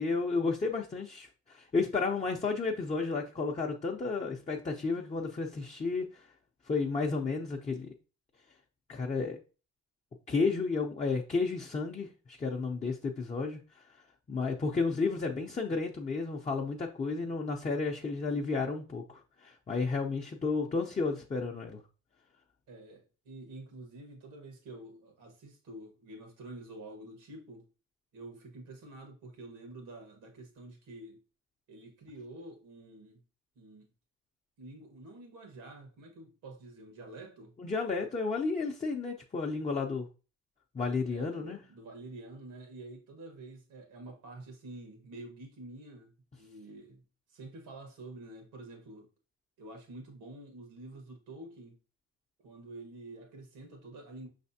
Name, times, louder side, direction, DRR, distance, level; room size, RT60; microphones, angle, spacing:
voice 1, 0.0-6.3 6.7-7.9 8.9-9.4 10.3-13.8 14.3-21.8 37.6-40.1 40.7-41.6, left 4 dB, 25° left, 0.6 m, -32 dB
voice 2, 22.7-27.7 28.1-31.2 31.7-33.2 33.5-33.9 34.6-37.5 41.1-47.0 47.3-49.1 49.6-51.8 52.4-54.3, right 2 dB, 90° right, 1.6 m, -48 dB
5.5 x 3.3 x 2.7 m
cardioid pair, 90°, 30 cm